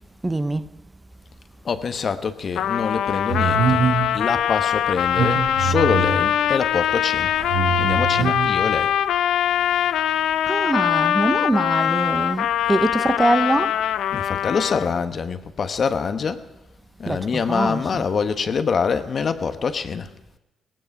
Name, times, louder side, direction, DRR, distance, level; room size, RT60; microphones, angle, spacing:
voice 1, 0.2-0.7 10.5-13.8 17.1-18.0, right 2 dB, 20° right, 0.8 m, -23 dB
voice 2, 1.6-3.8 4.1-7.3 7.8-8.9 14.1-16.4 17.0-20.1, left 6 dB, 55° left, 1.1 m, -25 dB
Trumpet, 2.6-15.0, left 10 dB, 75° left, 0.5 m, -22 dB
sound 1, 3.3-4.2 5.0-6.3 7.2-8.6, right 6 dB, 75° right, 1.7 m, -23 dB
17.0 x 15.5 x 5.5 m
supercardioid pair, 50°, 0 cm